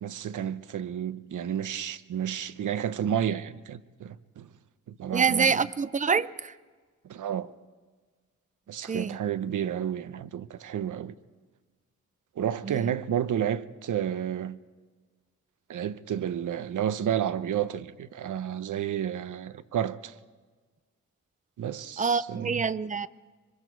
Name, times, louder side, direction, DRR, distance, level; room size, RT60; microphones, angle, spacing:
voice 1, 0.0-4.5 4.9-5.6 7.0-7.5 8.7-11.1 12.4-14.6 15.7-20.1 21.6-22.6, right 9 dB, 80° right, 0.8 m, -31 dB
voice 2, 5.1-6.5 8.9-9.2 12.6-12.9 22.0-23.1, right 5 dB, 25° right, 0.5 m, -26 dB
26.0 x 24.0 x 4.6 m
wide cardioid pair, 130°, 30 cm